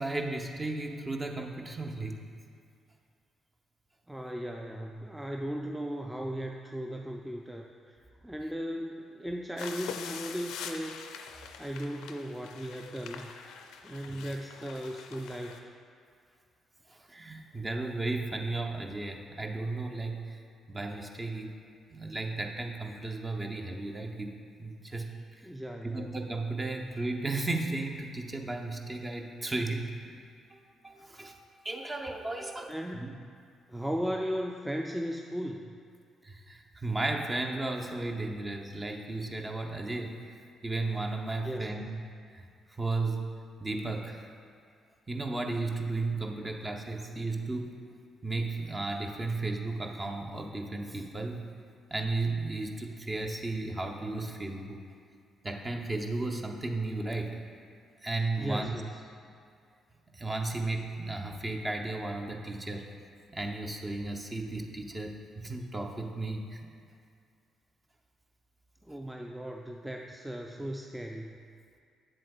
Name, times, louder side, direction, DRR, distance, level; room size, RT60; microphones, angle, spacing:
voice 1, 0.0-2.2 14.1-14.2 16.9-20.4 20.7-21.5 21.9-24.3 24.6-25.1 25.8-30.2 30.5-30.6 30.8-31.4 31.6-33.1 36.2-40.2 40.6-42.0 42.3-42.5 42.8-43.2 43.6-44.3 45.1-47.8 48.2-51.4 51.9-54.8 55.4-57.4 58.0-58.7 60.1-62.9 63.3-66.6, right 2 dB, 30° right, 2 dB, 0.8 m, -34 dB
voice 2, 4.1-11.0 11.6-13.3 13.8-15.7 25.4-26.2 32.7-33.1 33.7-35.8 41.4-41.8 46.1-46.2 58.4-59.0 68.8-71.3, equal, 10° right, 2 dB, 0.4 m, -37 dB
sound 1, 9.6-15.6, left 7 dB, 70° left, 0.4 m, -44 dB
7.8 x 7.5 x 2.3 m, 2.3 s
hypercardioid pair, 45°, 0 cm